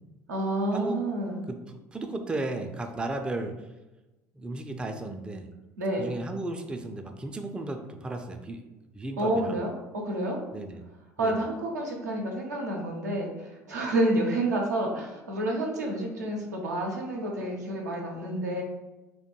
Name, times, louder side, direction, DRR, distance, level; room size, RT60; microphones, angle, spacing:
voice 1, 0.3-1.4 5.8-6.1 9.2-10.4 11.2-18.6, right 1 dB, 85° right, 0 dB, 0.5 m, -29 dB
voice 2, 1.5-3.5 4.3-5.5 6.0-8.7 8.9-9.6 10.5-10.8 11.2-11.3, right 2 dB, 10° right, 4 dB, 0.3 m, -34 dB
2.2 x 2.1 x 2.9 m, 1.1 s
figure-of-eight pair, 60°, 9 cm